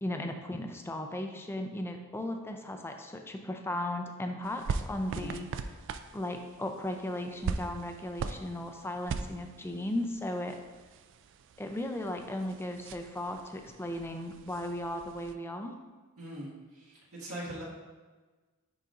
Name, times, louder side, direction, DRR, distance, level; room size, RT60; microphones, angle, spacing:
voice 1, 0.0-5.5 6.1-10.6 11.6-15.8, left 1 dB, 10° left, 5 dB, 0.4 m, -36 dB
sound 1, 4.4-15.3, right 5 dB, 55° right, 0.3 m, -41 dB
voice 2, 5.1-5.4 16.2-17.6, right 1 dB, 85° right, -6 dB, 1.8 m, -42 dB
10.0 x 4.0 x 2.5 m, 1.3 s
head